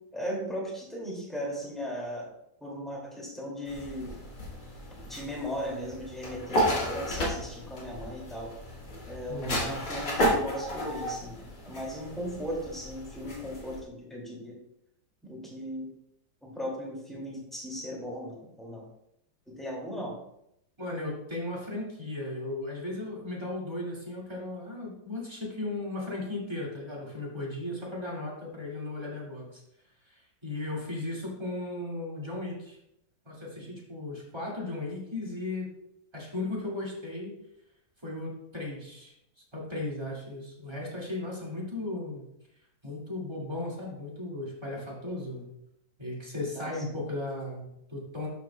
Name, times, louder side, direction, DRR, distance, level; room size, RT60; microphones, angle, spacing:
voice 1, 0.1-2.3 2.6-4.1 5.0-8.5 9.1-14.6 15.2-15.9 16.4-18.9 19.5-20.2 46.5-46.8, equal, ahead, -3 dB, 2.4 m, -37 dB
sound 1, 3.7-13.8, equal, 75° left, 2.7 m, -33 dB
voice 2, 9.3-9.8 20.8-29.6 30.0-32.8 33.2-35.7 36.1-37.3 38.0-39.1 39.5-42.3 42.8-45.5 46.0-48.3, left 2 dB, 15° right, -4 dB, 2.3 m, -36 dB
12.0 x 6.0 x 2.3 m, 0.79 s
omnidirectional pair, 1.9 m